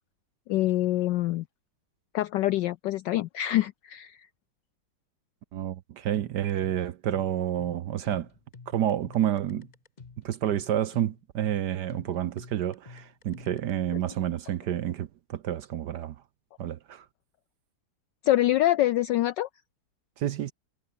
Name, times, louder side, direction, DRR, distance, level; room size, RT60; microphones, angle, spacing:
voice 1, 0.5-1.4 2.1-4.3 18.2-19.5, left 14 dB, 80° left, 1.0 m, -25 dB
voice 2, 5.5-8.3 8.7-9.7 10.2-16.2 16.6-17.1 20.2-20.5, right 11 dB, 65° right, 1.1 m, -29 dB
sound 1, 6.1-13.7, left 4 dB, 30° left, 0.8 m, -49 dB
omnidirectional pair, 2.4 m